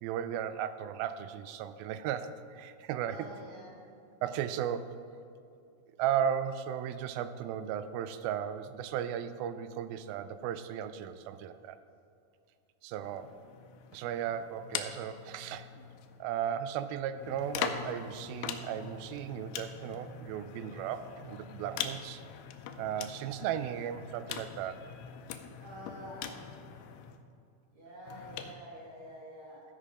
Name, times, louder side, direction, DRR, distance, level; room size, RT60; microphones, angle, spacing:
voice 1, 0.0-3.3 4.2-5.0 6.0-11.8 12.8-13.3 13.9-15.7 16.2-22.2 22.8-24.9, right 9 dB, 85° right, 11 dB, 2.4 m, -35 dB
voice 2, 3.0-3.8 25.6-26.3 27.7-29.6, equal, 40° right, -6 dB, 3.2 m, -47 dB
sound 1, 13.0-16.3 17.1-27.2 28.1-28.6, left 8 dB, 90° left, 2.5 m, -42 dB
15.0 x 5.6 x 5.0 m, 2.5 s
omnidirectional pair, 4.2 m